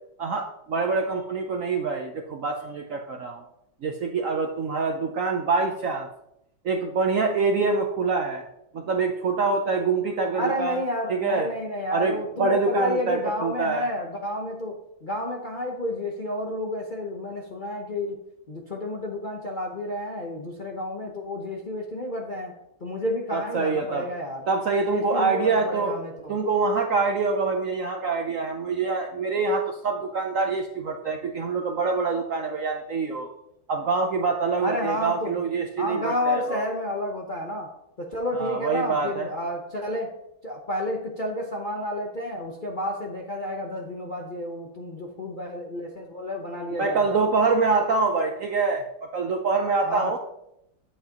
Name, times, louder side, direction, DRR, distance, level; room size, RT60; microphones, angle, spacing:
voice 1, 0.2-3.4 3.8-6.1 6.6-8.4 8.7-10.8 11.1-11.5 11.9-13.9 23.3-24.1 24.5-26.0 26.3-33.3 33.7-36.6 38.3-39.3 46.8-50.2, right 4 dB, 65° right, 4 dB, 0.8 m, -25 dB
voice 2, 10.3-18.2 18.5-22.5 22.8-24.4 24.9-26.4 34.6-35.4 35.8-40.1 40.4-47.2 49.8-50.2, left 1 dB, 45° left, -1 dB, 0.7 m, -31 dB
9.4 x 8.6 x 2.9 m, 0.82 s
omnidirectional pair, 2.1 m